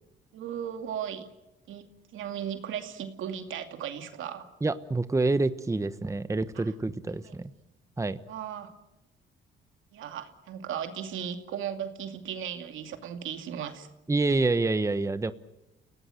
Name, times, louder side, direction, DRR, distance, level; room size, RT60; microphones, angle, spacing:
voice 1, 0.3-1.3 1.7-4.5 6.6-6.7 7.3-7.4 8.3-8.7 9.9-13.9, right 9 dB, 80° right, 6 dB, 2.5 m, -36 dB
voice 2, 4.6-7.5 8.0-8.2 14.1-15.3, right 3 dB, 15° right, 12 dB, 1.0 m, -27 dB
29.5 x 17.5 x 7.8 m, 0.93 s
cardioid pair, 90°, 20 cm